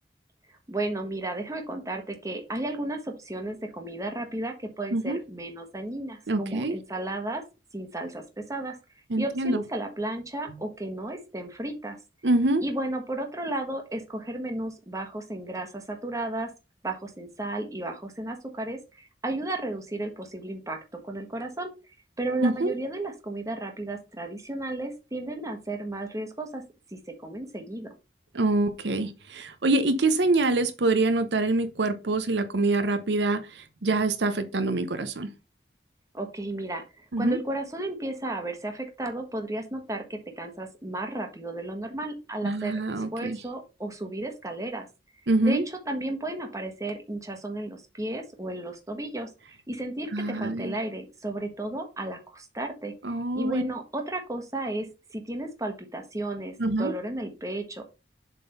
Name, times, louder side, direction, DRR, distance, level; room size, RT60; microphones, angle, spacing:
voice 1, 0.7-7.4 7.7-8.2 8.5-8.8 9.2-12.0 12.6-16.5 16.8-20.8 21.0-21.7 22.2-26.6 26.9-27.9 36.1-44.9 45.4-49.3 49.7-52.9 53.3-57.9, right 2 dB, 20° right, 1.4 m, -33 dB
voice 2, 6.3-6.7 9.1-9.6 12.2-12.6 22.4-22.7 28.3-35.3 37.1-37.4 42.4-43.4 45.3-45.6 50.1-50.7 53.0-53.6 56.6-56.9, right 2 dB, 85° right, 0.8 m, -25 dB
7.5 x 3.8 x 5.4 m
head